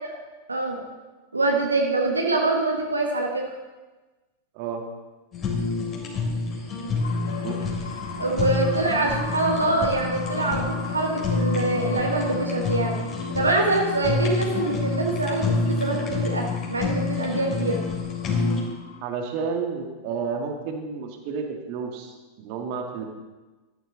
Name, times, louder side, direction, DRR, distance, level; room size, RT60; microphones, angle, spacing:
voice 1, 1.3-3.4 6.8-6.9 8.2-13.0 13.3-17.8, right 2 dB, 80° right, 1 dB, 1.5 m, -24 dB
Fire, 5.3-18.6, left 4 dB, 30° left, 3.4 m, -28 dB
sound 1, 7.0-19.0, left 4 dB, 65° left, 2.1 m, -39 dB
voice 2, 7.3-7.6 14.2-14.4 19.0-23.0, right 5 dB, 45° right, 3 dB, 1.8 m, -31 dB
13.0 x 11.0 x 3.9 m, 1.2 s
figure-of-eight pair, 90°, 0 cm